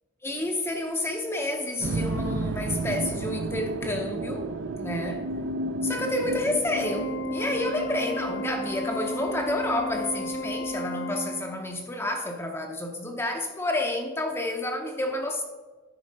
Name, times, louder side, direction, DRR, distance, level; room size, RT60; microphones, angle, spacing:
voice 1, 0.2-4.5 4.8-5.2 5.8-15.4, left 1 dB, 10° left, 3 dB, 0.6 m, -30 dB
sound 1, 1.8-10.7, right 2 dB, 55° right, 0.4 m, -33 dB
Organ, 6.8-11.9, left 1 dB, 60° left, 0.7 m, -33 dB
9.7 x 4.4 x 5.4 m, 1.4 s
head